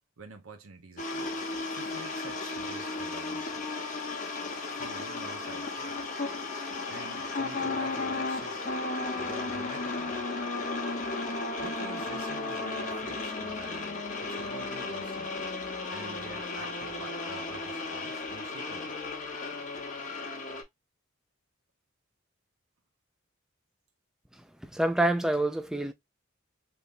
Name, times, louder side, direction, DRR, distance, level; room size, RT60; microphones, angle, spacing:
voice 1, 0.2-1.4 1.7-3.8 4.7-5.9 6.9-8.6 9.1-10.2 11.6-15.5 15.9-18.9, right 3 dB, 80° right, 0.9 m, -47 dB
sound 1, 1.0-20.6, left 3 dB, 40° left, 0.9 m, -34 dB
voice 2, 24.6-25.9, right 1 dB, 5° right, 0.3 m, -27 dB
3.5 x 3.0 x 2.6 m
head